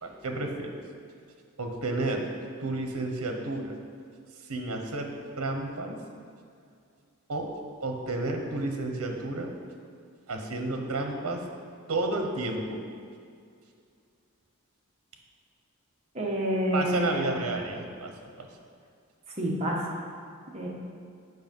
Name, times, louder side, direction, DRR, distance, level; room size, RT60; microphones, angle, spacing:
voice 1, 0.0-0.7 1.6-2.3 2.6-3.7 4.4-5.1 5.4-6.0 7.3-7.5 7.8-9.5 10.3-11.4 11.9-12.8 16.7-18.1 18.4-18.5, right 2 dB, 80° right, 3 dB, 1.0 m, -31 dB
voice 2, 16.1-17.3 19.4-19.8 20.5-20.7, equal, 30° right, -3 dB, 1.3 m, -28 dB
8.1 x 5.5 x 5.4 m, 2.3 s
head